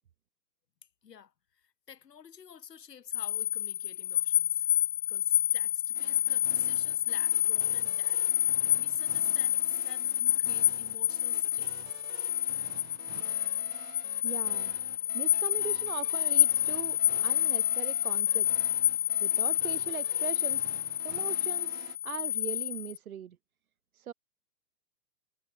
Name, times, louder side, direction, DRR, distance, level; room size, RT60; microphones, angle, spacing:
voice 1, 1.0-4.7 5.1-8.2 8.5-11.7, left 8 dB, 75° left, 4.7 m, -49 dB
sound 1, 3.1-23.0, left 11 dB, 45° left, 1.0 m, -28 dB
sound 2, 5.9-22.0, right 40 dB or more, 15° right, 1.3 m, -50 dB
voice 2, 14.2-14.7 15.1-18.5 18.8-20.7 21.0-23.4 23.9-24.1, right 10 dB, 60° right, 3.5 m, -40 dB
hypercardioid pair, 165°, 48 cm